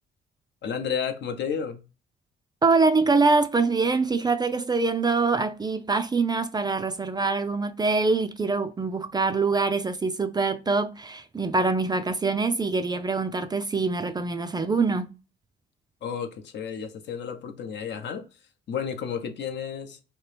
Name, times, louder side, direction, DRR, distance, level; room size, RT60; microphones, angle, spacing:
voice 1, 0.6-1.8 16.0-18.3 18.7-20.0, left 7 dB, 60° left, 0.7 m, -32 dB
voice 2, 2.6-15.1, right 4 dB, 20° right, 0.3 m, -24 dB
2.9 x 2.8 x 3.3 m
cardioid pair, 90°, 20 cm